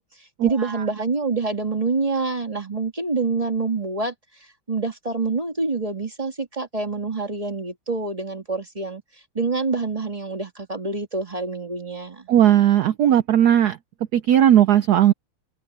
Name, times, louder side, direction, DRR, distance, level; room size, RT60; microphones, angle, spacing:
voice 1, 0.0-9.0 9.3-12.3, right 3 dB, 15° right, 1.9 m, -27 dB
voice 2, 12.3-13.8 14.1-15.1, right 11 dB, 90° right, 0.8 m, -16 dB
open air
omnidirectional pair, 2.4 m